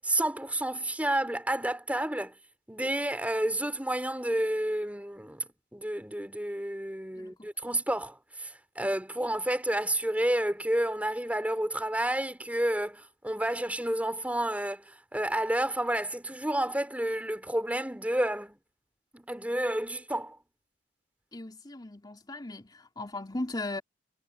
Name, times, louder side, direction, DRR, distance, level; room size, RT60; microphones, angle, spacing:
voice 1, 0.0-2.3 2.7-5.4 5.7-14.8 15.1-18.6 19.1-20.4, right 1 dB, 10° right, 3.9 m, -30 dB
voice 2, 7.1-7.5 21.3-23.8, left 2 dB, 25° left, 3.0 m, -37 dB
head